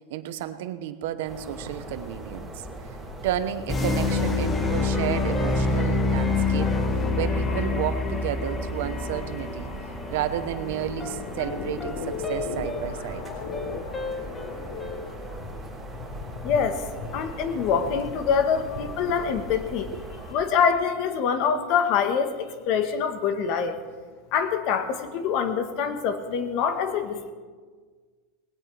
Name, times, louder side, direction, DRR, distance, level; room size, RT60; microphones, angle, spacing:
voice 1, 0.1-3.0 3.2-6.8 7.2-9.7 10.1-13.3 18.8-19.2 19.9-20.0, right 11 dB, 75° right, 11 dB, 1.0 m, -32 dB
sound 1, 1.2-20.3, right 1 dB, 5° right, 4.7 m, -40 dB
sound 2, 3.7-15.4, left 3 dB, 15° left, 1.2 m, -27 dB
sound 3, 10.8-19.5, left 6 dB, 75° left, 1.2 m, -38 dB
voice 2, 16.4-16.8 17.1-19.9 20.3-23.7 24.3-27.3, left 7 dB, 45° left, 8 dB, 1.3 m, -25 dB
20.0 x 17.5 x 3.4 m, 1.5 s
supercardioid pair, 155°, 0 cm